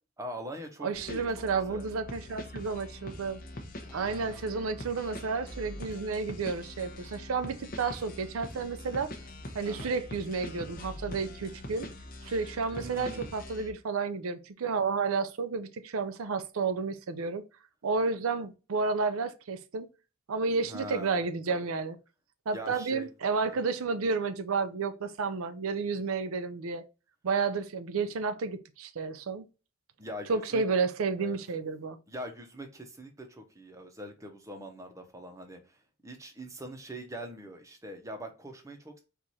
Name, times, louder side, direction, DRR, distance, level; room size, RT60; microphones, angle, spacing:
voice 1, 0.2-1.9 3.8-4.5 9.6-9.9 12.7-13.3 20.7-21.2 21.5-21.6 22.5-23.1 30.0-30.6 31.2-31.4 32.1-39.0, equal, 15° right, 0.8 m, -43 dB
voice 2, 0.8-3.4 3.9-9.1 9.5-11.9 12.2-17.4 17.8-19.9 20.3-22.0 22.5-26.8 27.2-29.4 30.3-32.0, right 4 dB, 85° right, 0.5 m, -31 dB
sound 1, 0.9-13.7, left 1 dB, 45° left, 0.8 m, -43 dB
4.6 x 2.5 x 4.1 m
head